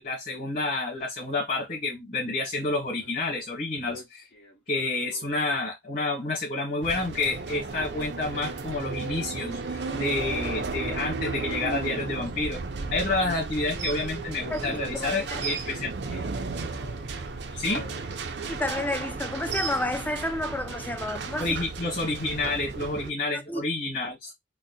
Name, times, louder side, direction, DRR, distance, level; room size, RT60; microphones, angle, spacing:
voice 1, 0.0-4.2 4.7-12.6 12.9-15.9 17.6-17.8 21.4-24.3, left 2 dB, 45° left, 1.7 m, -29 dB
Male speech man speaking, 2.4-2.7 3.0-3.5 3.9-7.1 7.5-8.9 9.1-10.0 11.1-13.5 14.0-14.2 14.6-17.0 17.5-18.2 18.7-18.8, left 1 dB, 85° left, 1.6 m, -47 dB
sound 1, 6.8-23.1, right 4 dB, 70° right, 0.6 m, -34 dB
voice 2, 14.5-15.4 18.5-21.6 23.3-23.6, left 1 dB, 10° left, 0.4 m, -31 dB
4.1 x 2.1 x 2.6 m
head